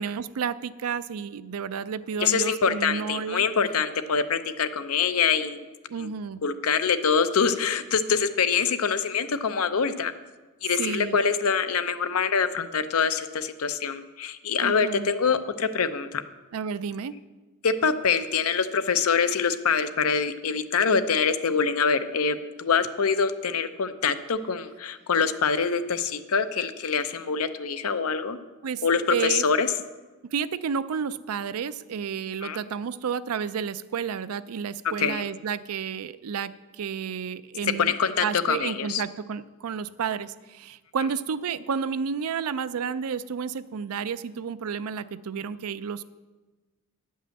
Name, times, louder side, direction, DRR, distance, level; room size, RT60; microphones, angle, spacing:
voice 1, 0.0-3.4 5.9-6.4 10.8-11.2 14.6-15.1 16.5-17.1 28.6-28.8 29.1-29.4 30.3-36.5 36.8-37.9 38.2-46.0, right 6 dB, 85° right, 14 dB, 0.4 m, -31 dB
voice 2, 2.2-5.6 6.0-6.1 6.4-10.1 10.6-16.2 17.6-28.4 28.8-29.7 32.4-32.6 35.0-35.2 37.8-39.0, left 6 dB, 75° left, 10 dB, 0.6 m, -25 dB
10.0 x 5.5 x 7.6 m, 1.2 s
head